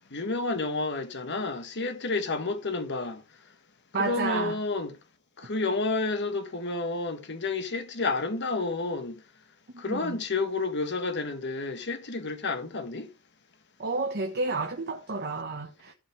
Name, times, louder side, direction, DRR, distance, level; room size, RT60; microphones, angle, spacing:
voice 1, 0.1-3.2 4.0-4.9 5.4-9.1 9.8-13.1, left 3 dB, 55° left, 1.4 m, -30 dB
voice 2, 3.9-4.6 9.7-10.2 13.8-15.9, right 3 dB, 50° right, 1.3 m, -31 dB
15.5 x 5.3 x 3.4 m
head